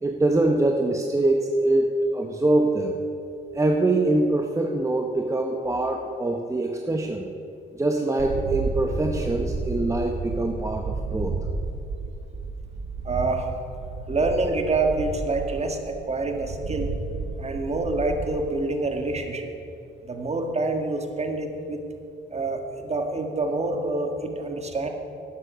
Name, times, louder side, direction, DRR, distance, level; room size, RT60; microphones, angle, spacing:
voice 1, 0.0-3.0 3.5-7.3 7.8-11.3, right 2 dB, 15° right, 2 dB, 0.9 m, -24 dB
sound 1, 8.2-18.4, right 3 dB, 60° right, 1.6 m, -32 dB
voice 2, 13.0-13.5 14.1-16.9 17.4-19.5 20.0-21.8 22.3-24.9, right 2 dB, 30° right, 4 dB, 1.7 m, -27 dB
12.0 x 9.7 x 6.2 m, 2.8 s
cardioid pair, 90°, 20 cm